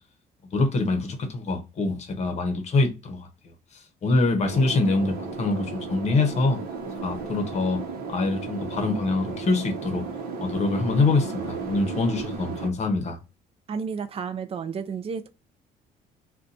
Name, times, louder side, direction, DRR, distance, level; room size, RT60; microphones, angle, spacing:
voice 1, 0.5-3.3 4.0-6.6 7.0-7.8 8.1-10.1 10.4-13.2, left 3 dB, 40° left, 0.8 m, -24 dB
sound 1, 4.4-12.7, right 4 dB, 60° right, 0.8 m, -34 dB
voice 2, 13.7-15.3, right 6 dB, 35° right, 0.4 m, -31 dB
2.6 x 2.2 x 4.0 m
cardioid pair, 110°, 17 cm